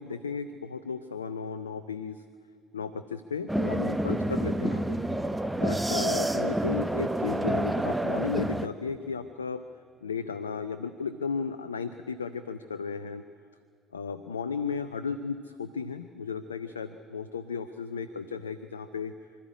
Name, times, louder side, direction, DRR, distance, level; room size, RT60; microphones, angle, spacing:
voice 1, 0.0-2.2 2.7-5.0 5.6-9.6 10.0-13.2 13.9-19.1, left 5 dB, 85° left, 11 dB, 0.5 m, -34 dB
sound 1, 3.5-8.7, right 1 dB, 10° right, 1.0 m, -28 dB
25.5 x 13.0 x 9.7 m, 2.3 s
figure-of-eight pair, 55°, 0 cm